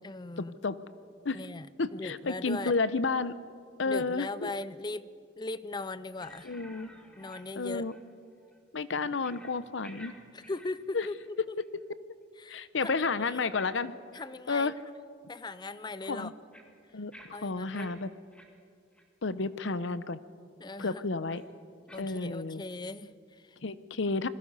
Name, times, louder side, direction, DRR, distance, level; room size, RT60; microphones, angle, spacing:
voice 1, 0.0-0.6 1.3-2.8 3.8-5.1 5.4-6.5 7.2-7.9 10.3-11.2 11.5-11.6 12.4-13.5 14.1-14.7 15.3-16.3 16.9-17.0 17.3-18.1 20.6-21.1 21.9-23.6, left 2 dB, 20° left, 16 dB, 0.5 m, -39 dB
voice 2, 1.8-3.3 3.8-4.5 6.4-6.9 7.6-7.9 8.7-10.1 10.9-11.1 12.5-13.9 14.5-14.7 16.1-16.3 16.9-18.1 19.2-20.2 20.8-21.4 22.0-22.6 23.6-24.3, left 4 dB, 70° left, 15 dB, 0.8 m, -31 dB
sound 1, 6.2-8.1 8.4-8.6 9.2-9.6 9.8-10.1 10.4-11.3 11.6-11.8 12.9-13.1 13.5-13.7 14.1-14.3 14.7-14.8 15.4-15.5 15.9-17.9 18.3-18.5 18.9-19.0 19.6-19.7 21.3-21.4 21.9-22.0, equal, 5° left, 1.9 m, -52 dB
28.0 x 21.5 x 5.5 m, 2.3 s
head